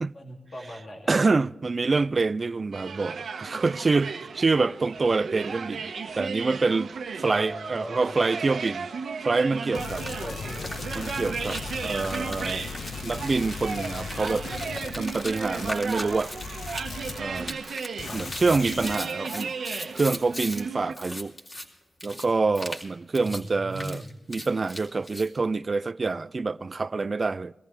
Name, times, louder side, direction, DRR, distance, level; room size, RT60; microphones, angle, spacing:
voice 1, 0.1-1.2 7.2-8.2 10.2-10.9 18.0-18.2 23.2-24.1, equal, 60° left, 2.6 m, -39 dB
voice 2, 1.1-6.9 7.2-8.9 9.2-10.1 10.9-12.6 13.0-14.5 14.9-16.3 17.2-17.6 18.1-19.5 19.9-21.3 22.0-24.0 24.3-27.5, right 3 dB, 50° right, 0.4 m, -26 dB
sound 1, 2.7-20.9, right 5 dB, 85° right, 1.2 m, -35 dB
sound 2, 9.7-17.7 18.0-19.0, left 5 dB, 75° left, 0.6 m, -38 dB
sound 3, 10.1-10.2 10.5-20.6 20.9-21.6 22.0-22.2 22.5-22.9 23.1-23.4 23.7-25.3, equal, 30° left, 3.4 m, -38 dB
22.0 x 14.5 x 3.3 m
cardioid pair, 55°, 0 cm